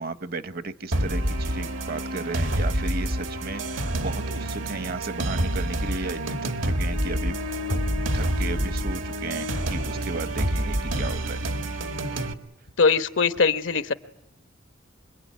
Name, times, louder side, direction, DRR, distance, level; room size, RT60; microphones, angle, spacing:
voice 1, 0.0-7.4 7.6-7.8 8.1-11.4, right 3 dB, 50° right, 0.9 m, -34 dB
sound 1, 0.9-12.3, right 1 dB, 85° right, 1.8 m, -27 dB
voice 2, 12.8-13.9, left 5 dB, 80° left, 1.2 m, -21 dB
26.5 x 22.0 x 9.4 m
head